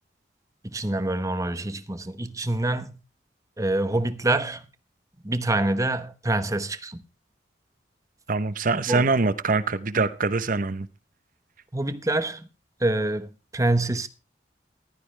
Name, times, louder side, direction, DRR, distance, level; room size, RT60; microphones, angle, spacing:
voice 1, 0.6-2.9 3.6-4.6 5.2-7.0 8.9-9.1 10.0-10.1 11.7-12.5 12.8-14.1, right 2 dB, 20° right, 1.0 m, -26 dB
voice 2, 8.3-10.9, right 3 dB, 50° right, 0.9 m, -24 dB
15.0 x 12.0 x 3.3 m
head